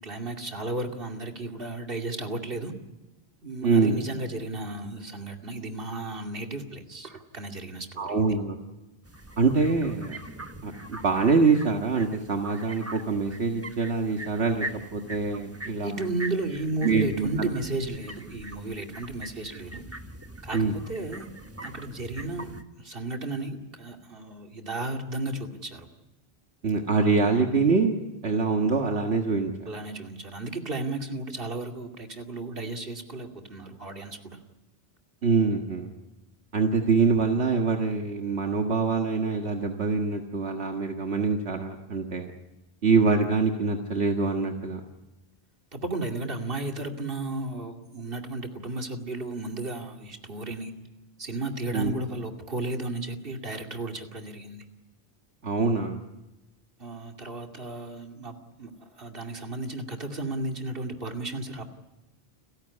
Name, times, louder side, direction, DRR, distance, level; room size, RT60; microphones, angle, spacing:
voice 1, 0.0-2.7 3.4-8.3 15.8-19.8 20.4-21.3 21.6-22.5 22.8-25.9 29.7-34.4 45.7-50.7 51.2-54.6 56.8-61.6, right 2 dB, 55° right, 3 dB, 2.7 m, -34 dB
voice 2, 3.6-4.0 8.0-8.6 9.4-10.2 10.6-14.7 14.9-16.0 16.8-17.5 20.5-20.7 26.6-28.0 28.2-29.7 35.2-35.9 36.5-42.3 42.8-44.8 51.7-51.9 55.4-56.0, right 4 dB, 75° right, 3 dB, 1.9 m, -24 dB
sound 1, 9.0-22.6, right 2 dB, 15° right, 1.3 m, -42 dB
30.0 x 15.5 x 9.9 m, 1.0 s
omnidirectional pair, 1.1 m